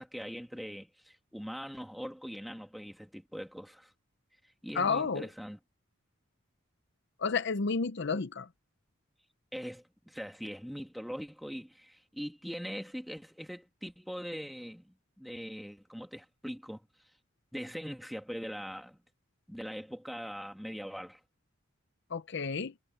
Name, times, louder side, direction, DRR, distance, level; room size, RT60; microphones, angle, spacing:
voice 1, 0.0-3.9 4.6-5.6 9.5-16.9 17.5-19.0 19.5-21.2, equal, ahead, 2.1 m, -42 dB
voice 2, 4.7-5.3 7.2-8.5 22.1-22.7, left 5 dB, 60° left, 0.7 m, -31 dB
head